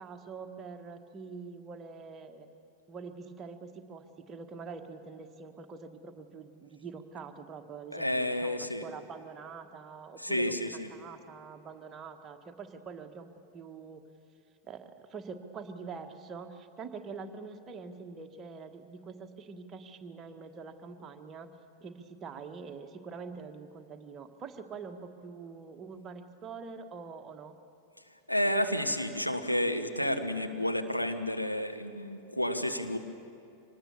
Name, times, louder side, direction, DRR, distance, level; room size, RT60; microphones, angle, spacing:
voice 1, 0.0-2.5 2.9-13.3 13.5-14.0 14.6-21.5 21.8-27.5, right 5 dB, 25° right, 6 dB, 1.4 m, -45 dB
voice 2, 7.9-8.8 10.2-10.9 28.3-33.0, left 1 dB, 90° left, 5 dB, 1.2 m, -30 dB
25.5 x 19.0 x 7.2 m, 2.6 s
figure-of-eight pair, 90°, 0 cm